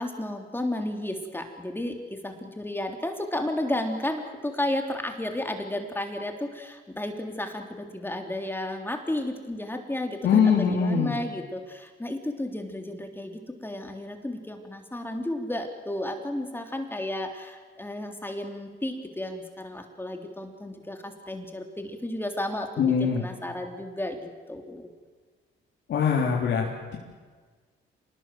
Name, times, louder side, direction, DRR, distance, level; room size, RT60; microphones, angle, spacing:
voice 1, 0.0-24.9, left 1 dB, 10° left, 4 dB, 3.4 m, -33 dB
voice 2, 10.2-11.1 22.8-23.3 25.9-27.0, left 6 dB, 70° left, -1 dB, 3.6 m, -23 dB
26.0 x 20.5 x 7.7 m, 1.5 s
cardioid pair, 90°, 20 cm